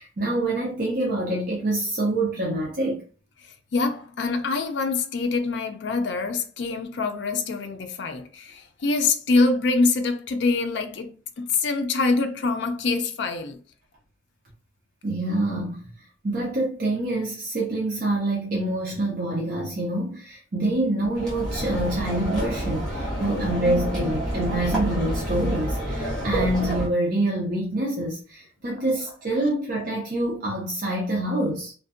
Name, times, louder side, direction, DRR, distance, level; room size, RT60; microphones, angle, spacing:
voice 1, 0.0-3.0 15.0-15.8 16.2-31.7, right 1 dB, 45° right, 0.5 m, -26 dB
voice 2, 3.7-13.6, left 3 dB, 65° left, 0.4 m, -25 dB
sound 1, 21.1-26.9, right 1 dB, 5° left, 0.9 m, -28 dB
2.6 x 2.1 x 2.4 m
head